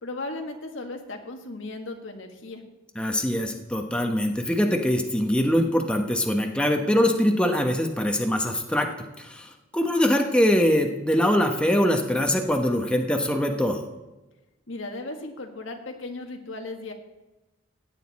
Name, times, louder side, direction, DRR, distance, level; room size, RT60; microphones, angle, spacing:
voice 1, 0.0-2.6 14.7-16.9, left 2 dB, 90° left, 4 dB, 1.7 m, -36 dB
voice 2, 2.9-8.9 9.2-13.9, equal, 5° left, 3 dB, 1.0 m, -23 dB
15.5 x 9.3 x 4.2 m, 1.1 s
head